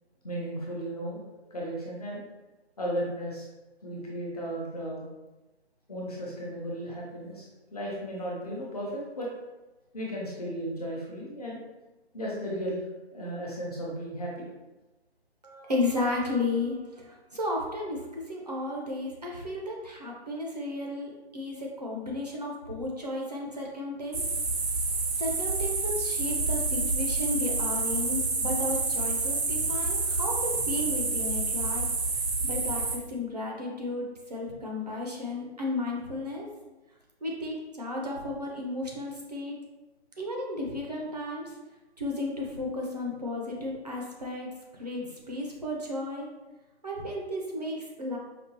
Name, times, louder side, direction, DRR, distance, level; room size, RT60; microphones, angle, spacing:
voice 1, 0.2-1.2 1.5-2.2 2.8-3.5 3.8-5.1 5.9-9.3 9.9-11.6 12.1-12.9 13.1-14.5 29.7-29.8, equal, 35° left, -4 dB, 0.9 m, -35 dB
voice 2, 15.4-24.2 24.8-31.8 32.4-34.0 34.3-36.5 37.2-39.6 40.2-41.5 42.0-44.5 44.8-46.3 46.8-48.2, left 2 dB, 40° right, -2 dB, 0.7 m, -33 dB
sound 1, 24.1-33.0, right 3 dB, 70° right, 0.8 m, -28 dB
5.2 x 2.3 x 2.8 m, 1.1 s
hypercardioid pair, 170°, 33 cm